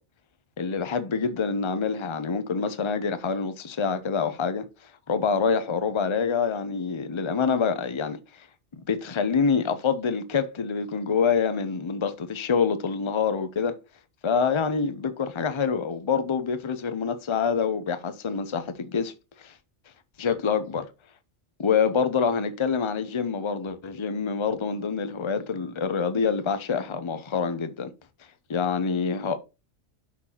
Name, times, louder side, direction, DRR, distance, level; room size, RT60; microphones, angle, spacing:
voice 1, 0.6-4.6 5.1-8.2 8.7-13.7 14.2-19.1 19.4-19.5 20.2-20.9 21.6-27.9 28.5-29.4, left 5 dB, 30° left, 0.7 m, -26 dB
6.1 x 5.8 x 2.9 m
omnidirectional pair, 1.2 m